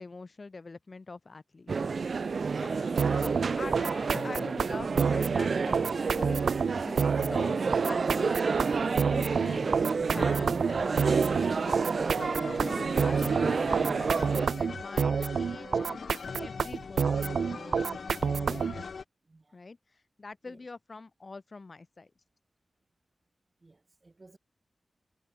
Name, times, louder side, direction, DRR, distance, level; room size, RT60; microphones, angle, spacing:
voice 1, 0.0-1.9 3.0-6.4 6.7-7.5 7.8-8.5 8.9-9.8 10.1-11.4 12.1-14.2 14.6-16.0 16.4-18.5 19.5-19.8 20.2-22.1, left 3 dB, 40° left, 6.8 m, -44 dB
sound 1, 1.7-14.5, right 5 dB, 60° right, 1.2 m, -30 dB
sound 2, 2.6-19.0, left 5 dB, 65° left, 6.2 m, -44 dB
sound 3, 3.0-18.8, right 6 dB, 85° right, 1.4 m, -29 dB
voice 2, 19.2-19.6 20.4-20.7 23.6-24.4, right 2 dB, 30° right, 5.7 m, -58 dB
wide cardioid pair, 105°, 0 cm